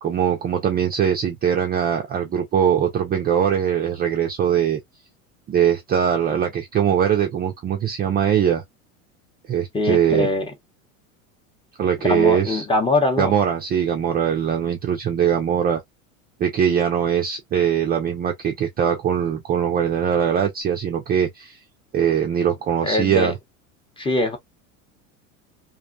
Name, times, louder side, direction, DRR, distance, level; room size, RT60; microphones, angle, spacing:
voice 1, 0.0-4.8 5.5-8.6 9.5-10.3 11.8-12.6 13.2-15.8 16.4-21.6 21.9-23.4, right 8 dB, 25° right, 0.4 m, -21 dB
voice 2, 9.7-10.5 12.0-13.3 22.8-23.3 24.0-24.4, left 2 dB, 10° left, 0.7 m, -22 dB
2.6 x 2.0 x 2.4 m
hypercardioid pair, 90°, 42 cm